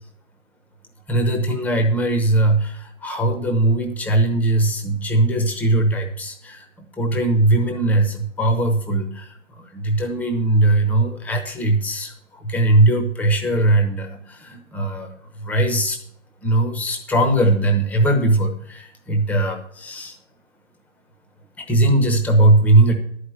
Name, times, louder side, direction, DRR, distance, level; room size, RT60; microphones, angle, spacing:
voice 1, 1.1-6.7 6.9-16.0 16.4-20.2 21.6-22.9, right 2 dB, 5° left, 5 dB, 0.8 m, -19 dB
11.0 x 5.1 x 7.8 m, 0.65 s
figure-of-eight pair, 125°, 35 cm